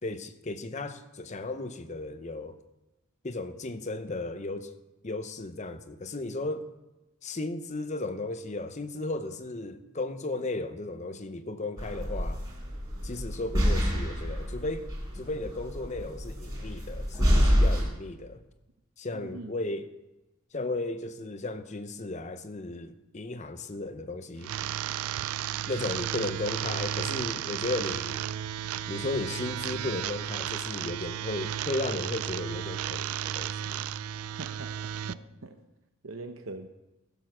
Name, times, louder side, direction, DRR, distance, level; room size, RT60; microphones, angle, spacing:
voice 1, 0.0-2.6 3.2-4.7 5.0-6.7 7.2-12.4 13.0-14.9 15.1-18.4 19.0-19.9 20.5-24.5 25.7-28.2 28.9-33.8, left 2 dB, 30° left, 0.7 m, -35 dB
sound 1, 11.8-17.8, equal, 15° right, 4.2 m, -27 dB
voice 2, 19.1-19.5 34.4-35.6 36.0-36.7, right 3 dB, 65° right, 0.8 m, -42 dB
sound 2, 24.4-35.1, right 10 dB, 85° right, 0.4 m, -33 dB
16.0 x 7.1 x 6.1 m
head